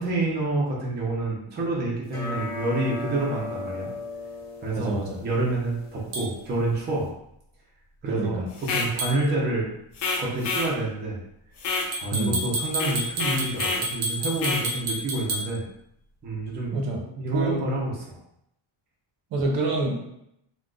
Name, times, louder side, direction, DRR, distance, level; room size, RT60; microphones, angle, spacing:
voice 1, 0.0-3.9 4.6-7.1 8.0-9.7 10.2-11.2 11.7-15.6 16.2-18.2, right 2 dB, 20° right, -4 dB, 0.5 m, -28 dB
sound 1, 2.1-7.1, left 3 dB, 20° left, 0.7 m, -37 dB
voice 2, 4.7-5.2 8.0-8.5 12.1-12.3 16.7-17.0 17.3-17.6 19.3-20.1, right 2 dB, 60° right, 0 dB, 0.8 m, -27 dB
sound 2, 6.1-6.3 9.0-9.2 11.9-15.5, right 1 dB, 85° right, 0.9 m, -30 dB
sound 3, 8.6-8.9 10.0-10.7 11.6-11.9 12.7-13.9 14.4-14.7, left 3 dB, 60° left, 0.6 m, -28 dB
2.4 x 2.2 x 3.7 m, 0.78 s
cardioid pair, 170°, 49 cm